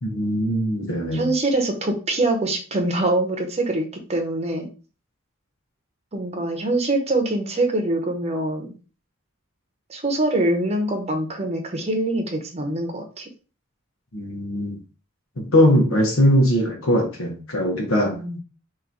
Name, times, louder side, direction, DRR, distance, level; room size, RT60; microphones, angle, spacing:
voice 1, 0.0-1.3 14.1-14.8 15.4-18.2, equal, 85° left, 2 dB, 1.2 m, -20 dB
voice 2, 1.1-4.7 6.1-8.7 9.9-13.3 18.1-18.4, right 2 dB, 30° right, 3 dB, 0.9 m, -24 dB
3.0 x 2.9 x 4.0 m, 0.36 s
head